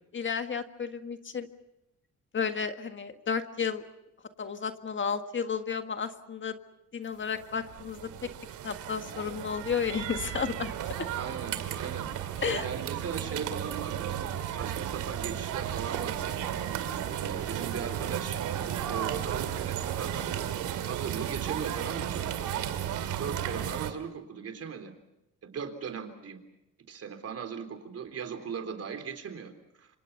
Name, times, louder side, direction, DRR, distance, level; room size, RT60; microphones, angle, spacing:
voice 1, 0.1-1.5 2.3-3.8 4.4-6.5 6.9-8.1 8.6-10.7 12.4-12.7, left 6 dB, 40° left, 8 dB, 1.7 m, -32 dB
sound 1, 7.3-23.9, right 10 dB, 90° right, 2.3 m, -34 dB
voice 2, 11.1-16.4 17.1-18.4 18.9-20.5 20.8-22.6 23.2-24.9 25.4-26.4 26.9-29.5 29.8-29.9, right 6 dB, 55° right, 7 dB, 3.7 m, -39 dB
27.0 x 26.0 x 5.7 m, 0.87 s
cardioid pair, 90°, 30 cm